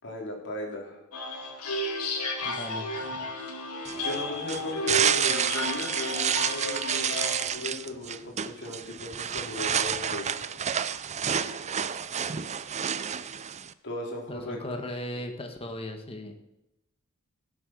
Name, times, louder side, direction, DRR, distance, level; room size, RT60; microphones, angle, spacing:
voice 1, 0.0-1.0 4.0-10.4 13.8-14.8, left 1 dB, 55° left, 0 dB, 4.0 m, -37 dB
sound 1, 1.1-7.5, left 1 dB, 80° left, 2.3 m, -33 dB
voice 2, 2.4-3.2 14.3-16.4, left 1 dB, 25° left, 4 dB, 1.7 m, -37 dB
sound 2, 3.8-13.7, right 8 dB, 30° right, 0.5 m, -29 dB
16.5 x 7.9 x 6.5 m, 0.91 s
head